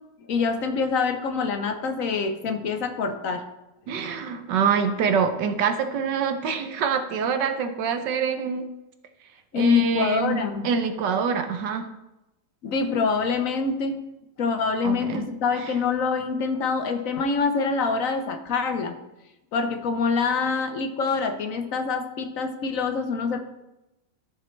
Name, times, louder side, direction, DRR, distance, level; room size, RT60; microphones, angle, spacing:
voice 1, 0.3-3.5 9.5-10.7 12.6-14.0 14.4-18.9 19.5-23.4, left 5 dB, 55° left, 8 dB, 1.0 m, -25 dB
voice 2, 3.9-8.7 9.6-11.9 14.8-15.2, right 6 dB, 75° right, 7 dB, 1.4 m, -25 dB
13.0 x 7.2 x 3.2 m, 0.93 s
omnidirectional pair, 2.0 m